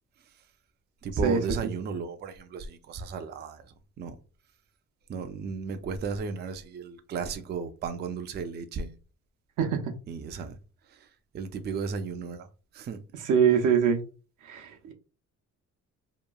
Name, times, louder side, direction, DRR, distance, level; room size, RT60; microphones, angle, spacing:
voice 1, 1.0-3.6 4.0-4.2 5.1-9.0 10.1-10.6 10.9-11.1 11.3-12.5 12.7-13.0, right 5 dB, 35° right, 0.4 m, -34 dB
voice 2, 13.2-14.0 14.4-14.9, right 7 dB, 80° right, 0.6 m, -23 dB
2.9 x 2.5 x 2.2 m
cardioid pair, 90°, 30 cm